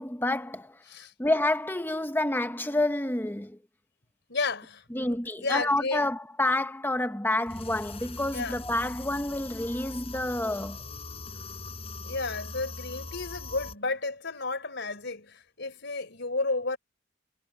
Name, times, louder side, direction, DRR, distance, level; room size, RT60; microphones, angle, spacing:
voice 1, 0.0-0.8 1.2-3.6 4.9-10.8, left 1 dB, 10° left, 1.0 m, -28 dB
voice 2, 4.3-5.2 5.4-6.1 8.3-8.6 12.0-16.8, left 3 dB, 60° left, 4.5 m, -32 dB
sound 1, 7.5-13.7, left 3 dB, 30° left, 6.6 m, -41 dB
head